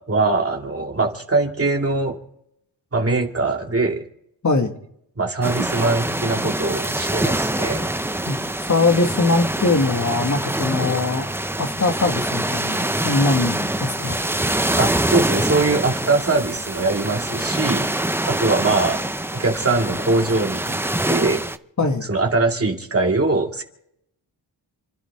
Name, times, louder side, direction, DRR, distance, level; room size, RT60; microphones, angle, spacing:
voice 1, 0.1-2.1 2.9-4.0 5.2-7.9 14.7-17.9 18.3-19.0 19.3-20.8 21.1-21.4 22.1-23.6, right 3 dB, 30° right, 2 dB, 2.3 m, -22 dB
sound 1, 5.4-21.6, right 1 dB, 5° right, 0.6 m, -25 dB
voice 2, 8.3-11.3 11.6-14.2 21.8-22.1, left 3 dB, 40° left, 4 dB, 1.8 m, -21 dB
29.5 x 11.5 x 3.6 m, 0.74 s
cardioid pair, 70°, 44 cm